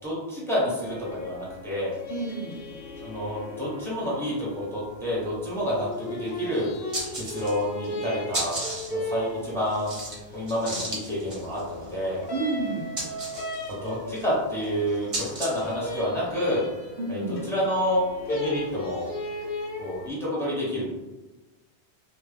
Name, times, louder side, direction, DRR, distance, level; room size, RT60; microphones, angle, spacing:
voice 1, 0.0-2.0 3.0-6.7 7.1-8.6 8.9-9.9 10.3-12.3 13.7-16.7 17.1-18.0 18.3-19.1 19.8-20.8, equal, 5° left, -7 dB, 0.8 m, -29 dB
sound 1, 0.8-20.1, left 1 dB, 60° left, 0.8 m, -37 dB
voice 2, 2.1-2.6 12.3-12.9 17.0-17.4, right 2 dB, 75° right, -1 dB, 0.9 m, -30 dB
sound 2, 5.9-6.0 6.3-6.4 6.7-7.7 8.0-15.7, right 1 dB, 35° right, 0.8 m, -35 dB
2.2 x 2.1 x 3.2 m, 1.1 s
omnidirectional pair, 1.1 m